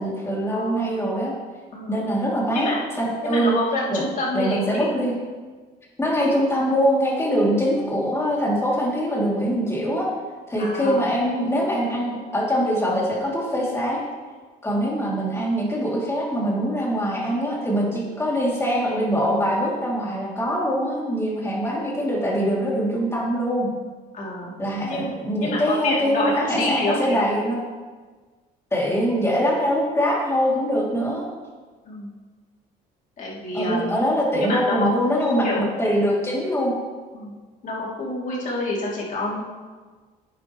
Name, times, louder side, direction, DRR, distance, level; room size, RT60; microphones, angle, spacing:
voice 1, 0.0-1.3 1.9-3.5 3.9-4.0 4.3-5.2 6.0-10.1 10.5-14.1 14.6-23.7 24.6-27.6 28.7-31.3 33.5-36.7, equal, 15° left, -4 dB, 3.0 m, -23 dB
voice 2, 1.7-2.0 2.5-2.8 3.2-4.9 10.6-11.0 24.1-24.5 24.8-25.1 25.4-27.2 31.8-32.1 33.2-34.0 34.3-35.7 37.1-37.3 37.6-39.4, left 2 dB, 50° left, -5 dB, 3.1 m, -27 dB
10.5 x 9.1 x 3.2 m, 1.4 s
cardioid pair, 110°, 17 cm